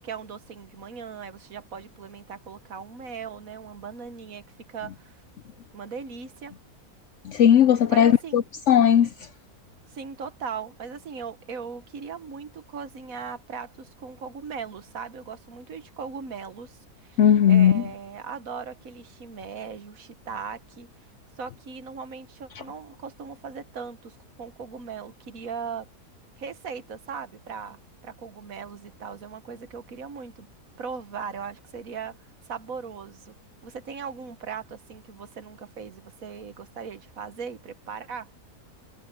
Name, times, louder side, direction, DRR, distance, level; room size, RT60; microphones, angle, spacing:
voice 1, 0.0-5.1 5.7-6.5 7.9-8.4 9.9-17.2 17.5-20.9 21.4-25.9 26.4-30.5 30.8-32.1 32.5-33.3 33.6-38.3, right 6 dB, 60° right, 1.6 m, -38 dB
voice 2, 7.2-9.1 17.2-17.8 22.6-22.7, left 9 dB, 65° left, 0.7 m, -18 dB
omnidirectional pair, 1.7 m